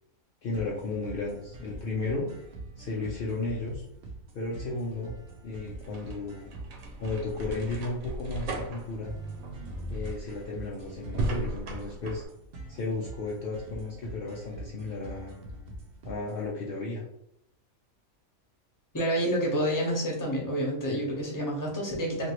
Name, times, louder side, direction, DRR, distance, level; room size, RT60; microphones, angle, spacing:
voice 1, 0.4-2.3 2.8-3.9 4.3-5.1 5.4-6.5 7.0-9.1 9.9-12.2 12.7-15.4 16.0-17.0, left 3 dB, 75° left, -3 dB, 0.5 m, -34 dB
sound 1, 0.5-16.5, right 2 dB, 60° right, 0.8 m, -44 dB
sound 2, 5.7-12.3, right 2 dB, 75° right, 1.1 m, -37 dB
voice 2, 18.9-22.3, equal, 20° left, -3 dB, 0.7 m, -28 dB
2.9 x 2.6 x 2.9 m, 0.73 s
omnidirectional pair, 1.5 m